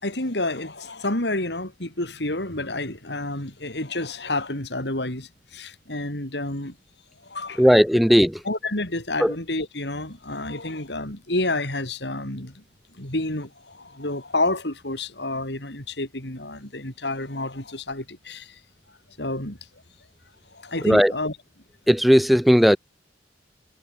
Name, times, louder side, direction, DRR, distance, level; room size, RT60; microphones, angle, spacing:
voice 1, 0.0-6.8 7.2-7.7 8.4-12.6 12.9-18.6 19.2-19.6 20.5-21.4, left 2 dB, 70° left, 5.6 m, -29 dB
voice 2, 7.6-8.4 9.2-9.3 20.8-21.1 21.9-22.8, equal, ahead, 0.3 m, -16 dB
head